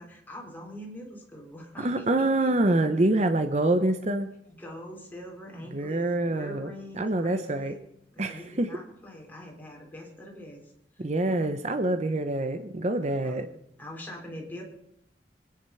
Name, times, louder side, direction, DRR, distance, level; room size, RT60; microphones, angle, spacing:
voice 1, 0.0-2.8 4.5-7.8 8.1-10.6 10.9-11.4 13.2-13.5 13.8-14.6, left 1 dB, 10° left, -1 dB, 3.6 m, -44 dB
voice 2, 1.8-4.3 5.7-6.7 7.0-7.7 8.2-8.7 11.0-13.5, right 2 dB, 40° right, 8 dB, 0.8 m, -26 dB
23.5 x 10.0 x 5.7 m, 0.76 s
head